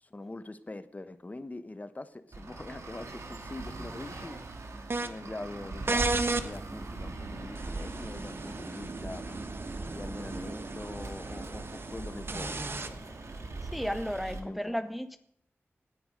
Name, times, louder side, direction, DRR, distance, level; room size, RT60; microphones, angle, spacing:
voice 1, 0.0-4.4 5.0-9.4 9.9-13.1 14.3-14.7, left 2 dB, 30° left, 12 dB, 1.1 m, -43 dB
Traffic noise roadway noise, 2.3-14.4, right 2 dB, 80° right, 2.0 m, -40 dB
sound 1, 4.9-5.1 5.9-6.5 7.6-12.9, right 3 dB, 55° right, 1.3 m, -35 dB
voice 2, 13.6-15.2, equal, ahead, 10 dB, 0.7 m, -34 dB
17.5 x 9.7 x 5.3 m, 0.71 s
wide cardioid pair, 90°, 5 cm